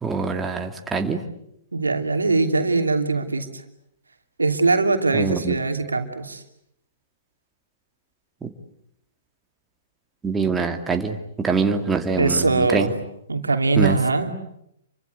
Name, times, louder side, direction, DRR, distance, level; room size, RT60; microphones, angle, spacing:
voice 1, 0.0-1.2 5.1-5.6 8.4-8.5 10.2-12.9 13.8-14.0, right 4 dB, 10° right, 5 dB, 2.4 m, -24 dB
voice 2, 1.7-3.6 4.4-6.4 12.2-12.9 13.3-14.3, right 3 dB, 85° right, 6 dB, 2.9 m, -21 dB
29.0 x 24.5 x 8.3 m, 0.78 s
figure-of-eight pair, 115°, 0 cm